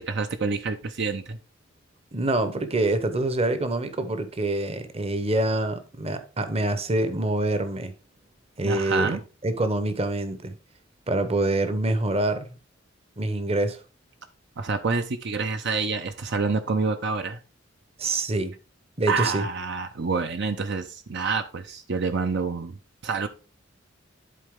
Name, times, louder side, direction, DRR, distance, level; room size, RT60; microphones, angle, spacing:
voice 1, 0.0-1.4 8.6-9.2 14.6-17.4 19.1-22.7 23.0-23.3, right 4 dB, 65° right, 0.7 m, -27 dB
voice 2, 2.1-7.9 8.6-10.5 11.1-12.5 13.2-13.8 18.0-18.5 19.0-19.5, right 2 dB, 30° right, 0.9 m, -26 dB
11.0 x 4.2 x 3.6 m
head